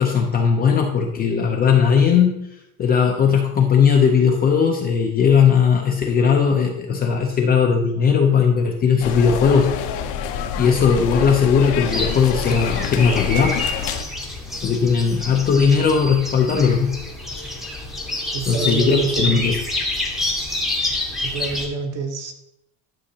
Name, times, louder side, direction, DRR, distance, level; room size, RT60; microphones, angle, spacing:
voice 1, 0.0-2.3 2.8-9.7 10.6-13.5 14.6-16.9 18.4-19.6, left 6 dB, 20° left, 1 dB, 0.5 m, -18 dB
sound 1, 9.0-14.0, left 7 dB, 65° left, 0.8 m, -27 dB
sound 2, 11.9-21.7, left 2 dB, ahead, 0.8 m, -28 dB
voice 2, 18.3-19.4 21.2-22.3, right 4 dB, 35° right, 4 dB, 1.0 m, -26 dB
11.5 x 6.3 x 2.8 m, 0.83 s
cardioid pair, 165°, 42 cm